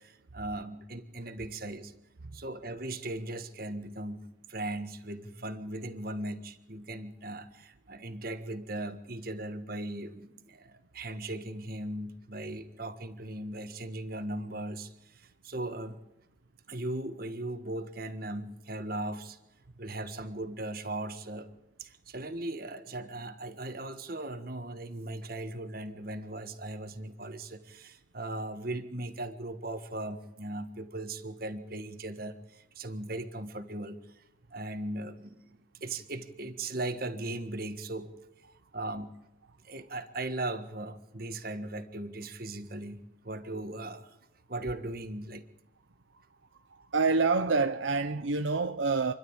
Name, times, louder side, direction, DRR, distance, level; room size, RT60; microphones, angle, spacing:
voice 1, 0.0-1.9 2.3-4.2 4.5-16.0 16.7-19.4 19.8-21.5 21.8-34.2 34.5-38.1 38.7-39.1 39.6-44.1 44.5-45.4, right 2 dB, 50° right, 1.6 m, -38 dB
voice 2, 46.7-49.1, right 4 dB, 75° right, 0.8 m, -27 dB
28.5 x 12.0 x 8.8 m
head